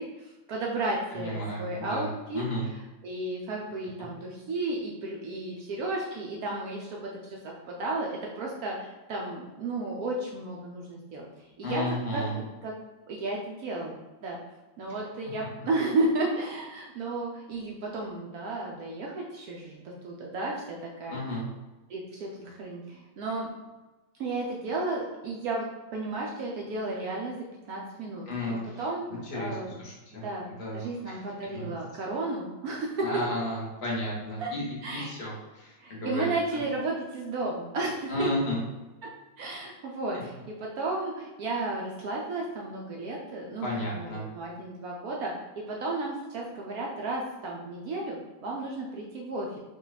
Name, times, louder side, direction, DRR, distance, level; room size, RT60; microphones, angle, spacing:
voice 1, 0.0-2.4 2.7-11.3 11.6-11.8 12.1-12.7 13.1-14.4 14.8-21.2 21.9-23.5 24.2-25.7 25.9-27.4 27.7-29.0 29.3-29.7 30.2-30.5 30.7-33.0 34.4-34.5 34.8-35.1 35.8-38.3 39.4-43.7 43.9-44.1 44.3-49.6, right 2 dB, 80° right, -2 dB, 0.8 m, -33 dB
voice 2, 1.1-2.7 11.6-12.4 21.1-21.5 28.3-28.8 29.1-30.2 30.6-31.7 33.0-36.6 38.1-38.6 40.1-40.2 43.6-44.2, left 1 dB, 45° left, -4 dB, 0.9 m, -33 dB
3.8 x 2.3 x 3.9 m, 1.1 s
omnidirectional pair, 2.1 m